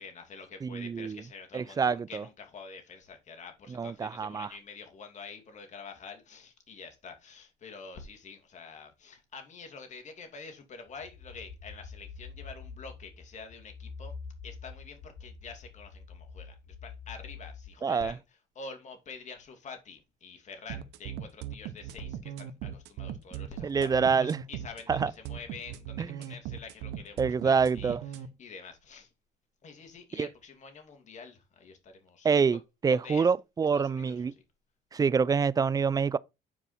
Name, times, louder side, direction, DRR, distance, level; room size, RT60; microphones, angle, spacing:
voice 1, 0.0-14.1 14.4-18.2 18.6-29.1 29.6-32.4 32.9-33.3 33.7-34.1, left 5 dB, 45° left, 2.5 m, -47 dB
voice 2, 0.6-1.2 1.5-2.2 3.7-4.5 17.8-18.1 23.6-24.4 24.9-25.1 26.0-26.1 27.2-28.0 30.1-30.3 32.2-34.3 34.9-36.2, right 5 dB, 20° right, 0.4 m, -26 dB
sound 1, 10.9-17.7, left 5 dB, 90° left, 3.0 m, -46 dB
sound 2, 20.7-28.3, right 10 dB, 90° right, 0.9 m, -39 dB
9.4 x 4.8 x 4.3 m
cardioid pair, 110°, 17 cm